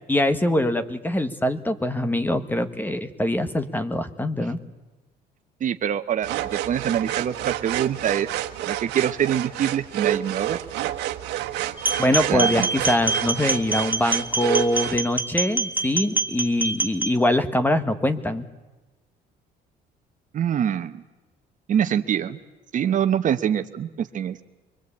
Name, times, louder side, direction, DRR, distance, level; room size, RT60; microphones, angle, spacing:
voice 1, 0.1-4.6 12.0-18.5, left 1 dB, 10° left, 10 dB, 1.5 m, -23 dB
voice 2, 5.6-8.3 8.6-10.6 12.3-12.7 20.3-21.0 21.7-22.4 22.7-24.4, right 9 dB, 50° right, 9 dB, 1.0 m, -24 dB
sound 1, 6.2-15.0, right 13 dB, 85° right, 1.3 m, -29 dB
sound 2, 11.8-17.1, right 2 dB, 10° right, 1.4 m, -26 dB
24.5 x 22.0 x 8.6 m, 1.2 s
cardioid pair, 110°, 17 cm